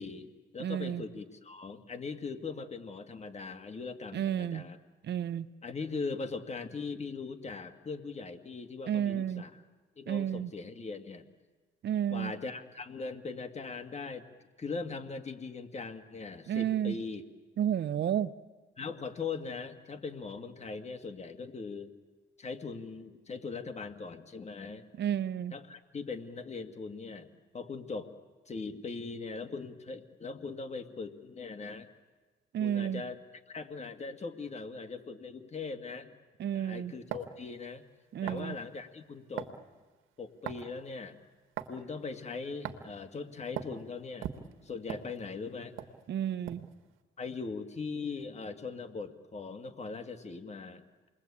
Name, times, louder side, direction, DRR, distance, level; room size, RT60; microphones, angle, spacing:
voice 1, 0.0-4.8 5.6-9.6 10.0-11.3 12.1-14.3 14.6-17.3 18.8-21.9 22.4-24.8 25.5-28.1 28.5-31.9 32.6-33.2 33.5-36.1 36.5-37.8 38.2-39.5 40.2-41.2 41.7-44.3 44.6-45.8 47.2-51.1, left 4 dB, 35° left, 7 dB, 2.1 m, -40 dB
voice 2, 0.6-1.0 4.1-4.6 5.1-5.5 8.9-9.4 10.1-10.5 11.8-12.3 16.5-16.9 17.6-18.3 25.0-25.5 32.5-33.0 36.4-36.9 38.1-38.6 46.1-46.7, right 10 dB, 60° right, 15 dB, 0.8 m, -31 dB
sound 1, 37.1-37.4 38.3-38.5 39.4-39.6 40.5-40.8 41.6-41.8 42.6-42.9 43.6-43.8 44.2-45.5 45.8-46.0 46.5-46.7, right 10 dB, 85° right, 1.6 m, -39 dB
28.5 x 21.0 x 8.6 m, 1.3 s
cardioid pair, 90°, 20 cm